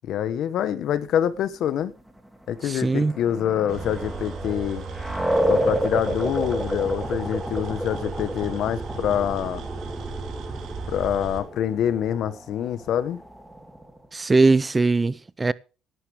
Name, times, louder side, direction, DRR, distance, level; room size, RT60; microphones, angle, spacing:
voice 1, 0.0-1.9 2.5-4.8 5.5-9.6 10.9-13.2, left 10 dB, 65° left, 1.3 m, -26 dB
sound 1, 2.6-14.0, right 1 dB, 5° right, 2.8 m, -30 dB
voice 2, 2.6-3.1 14.1-15.5, right 3 dB, 20° right, 0.6 m, -20 dB
sound 2, 3.7-11.4, right 4 dB, 65° right, 3.9 m, -36 dB
16.0 x 11.5 x 3.5 m
cardioid pair, 100°, 0 cm